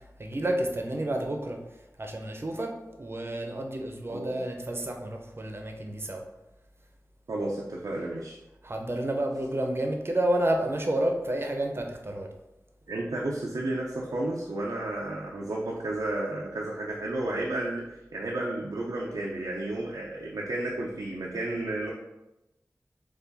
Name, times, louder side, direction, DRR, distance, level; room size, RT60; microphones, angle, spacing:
voice 1, 0.2-1.6 2.0-2.7 3.0-6.2 8.6-12.3, right 1 dB, 40° right, 3 dB, 0.7 m, -30 dB
voice 2, 7.3-8.4 12.9-21.9, right 2 dB, 85° right, -3 dB, 0.5 m, -32 dB
4.6 x 2.4 x 4.0 m, 0.97 s
wide cardioid pair, 50°, 6 cm